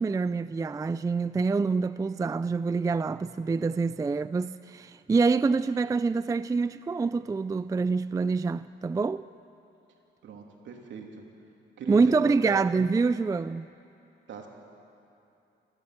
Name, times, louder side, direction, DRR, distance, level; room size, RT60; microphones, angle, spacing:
voice 1, 0.0-9.3 11.9-13.6, right 4 dB, 15° right, 0.4 m, -26 dB
voice 2, 10.2-11.2 11.8-12.6 14.3-14.5, right 6 dB, 70° right, 3.1 m, -39 dB
28.0 x 13.0 x 7.7 m
cardioid pair, 90°, 20 cm